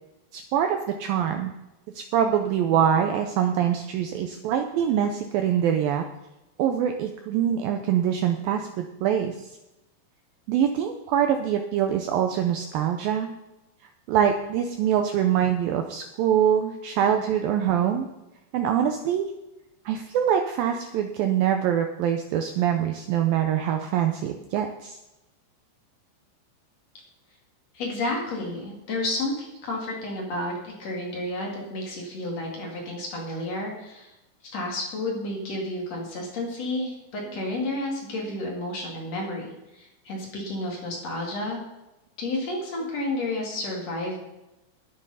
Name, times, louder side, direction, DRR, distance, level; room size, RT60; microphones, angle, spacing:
voice 1, 0.3-1.5 2.0-6.1 6.6-9.5 10.5-13.3 14.1-18.1 18.5-19.3 19.9-25.0, right 9 dB, 85° right, 5 dB, 2.0 m, -24 dB
voice 2, 27.7-34.1 34.4-41.6 42.2-44.2, left 2 dB, 45° left, -1 dB, 2.9 m, -31 dB
11.5 x 9.9 x 5.6 m, 0.97 s
omnidirectional pair, 5.0 m